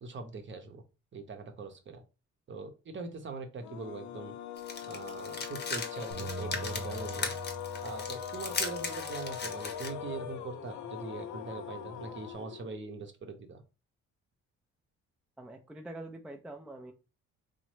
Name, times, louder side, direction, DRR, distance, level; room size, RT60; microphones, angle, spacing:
voice 1, 0.0-0.8 1.1-2.0 2.5-4.3 4.9-7.3 7.8-13.6, right 4 dB, 40° right, 6 dB, 0.7 m, -42 dB
sound 1, 3.6-12.9, left 9 dB, 75° left, 0.5 m, -41 dB
sound 2, 4.6-9.9, left 4 dB, 35° left, 0.7 m, -38 dB
Bass guitar, 6.1-10.6 11.2-12.3, right 5 dB, 70° right, 0.8 m, -46 dB
voice 2, 15.4-16.9, right 2 dB, 5° right, 4 dB, 0.3 m, -45 dB
3.0 x 2.0 x 3.1 m, 0.31 s
cardioid pair, 90°, 30 cm